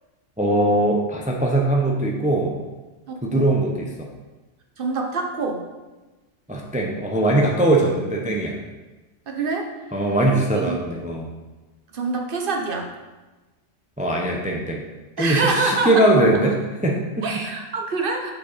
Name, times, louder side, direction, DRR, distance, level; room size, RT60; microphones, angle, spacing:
voice 1, 0.4-2.5 3.2-4.1 6.5-8.5 9.9-11.3 14.0-14.8 15.2-17.3, right 1 dB, 10° right, 0 dB, 0.6 m, -21 dB
voice 2, 3.1-3.5 4.8-5.6 9.3-9.7 10.5-10.8 11.9-12.9 15.2-16.3 17.2-18.3, right 3 dB, 50° right, 2 dB, 1.1 m, -25 dB
6.3 x 5.8 x 4.1 m, 1.2 s
omnidirectional pair, 1.3 m